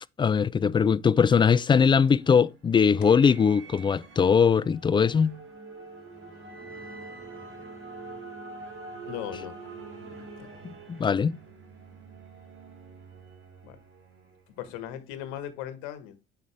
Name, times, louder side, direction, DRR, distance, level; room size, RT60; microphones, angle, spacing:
voice 1, 0.2-5.4 10.9-11.3, left 6 dB, 15° left, 0.3 m, -21 dB
sound 1, 1.5-14.8, right 3 dB, 40° right, 4.4 m, -45 dB
voice 2, 9.0-9.6 10.4-10.5 13.6-13.8 14.6-16.2, left 11 dB, 70° left, 1.5 m, -38 dB
8.3 x 5.7 x 3.5 m
hypercardioid pair, 70°, 30 cm